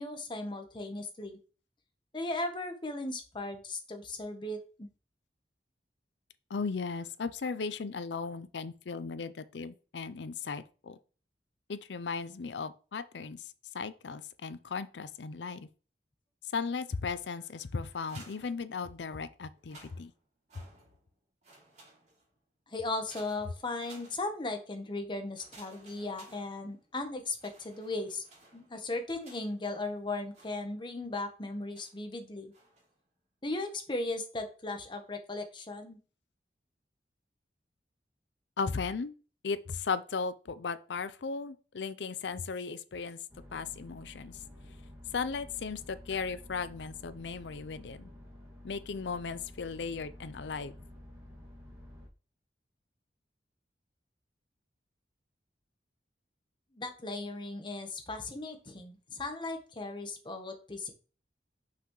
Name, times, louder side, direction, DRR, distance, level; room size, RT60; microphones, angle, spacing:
voice 1, 0.0-1.4 2.1-4.9 22.7-28.2 28.5-32.5 33.4-36.0 56.7-60.9, left 2 dB, 25° left, 1.1 m, -37 dB
voice 2, 6.5-11.0 11.7-13.5 13.7-15.7 16.5-20.1 38.6-39.1 39.4-43.2 43.5-44.4 45.1-48.1 48.6-50.7, left 5 dB, 80° left, 0.5 m, -36 dB
sound 1, 17.9-19.1 19.5-21.1 21.4-22.4 23.0-24.6 25.3-27.0 27.3-29.7 30.3-31.1 31.7-32.1 32.5-33.0, right 2 dB, 40° right, 3.1 m, -57 dB
sound 2, 43.3-52.1, left 1 dB, 15° right, 2.1 m, -51 dB
5.9 x 5.7 x 3.1 m
head